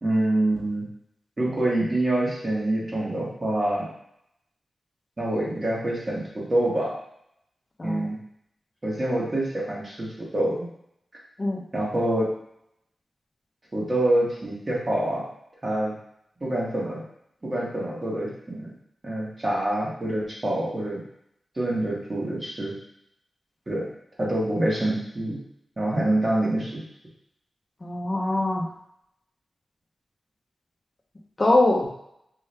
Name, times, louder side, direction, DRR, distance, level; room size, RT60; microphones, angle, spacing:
voice 1, 0.0-0.8 1.4-3.9 5.2-6.9 7.8-8.2 8.8-10.1 10.3-10.7 11.7-12.3 13.7-15.2 15.6-15.9 16.4-17.0 17.4-18.7 19.0-21.0 21.5-22.7 23.7-23.8 24.2-25.4 25.8-26.8, right 1 dB, 35° right, -5 dB, 1.7 m, -26 dB
voice 2, 27.8-28.7 31.4-31.9, left 2 dB, 30° left, 0 dB, 0.7 m, -22 dB
4.6 x 3.0 x 3.3 m, 0.74 s
cardioid pair, 75°, 0 cm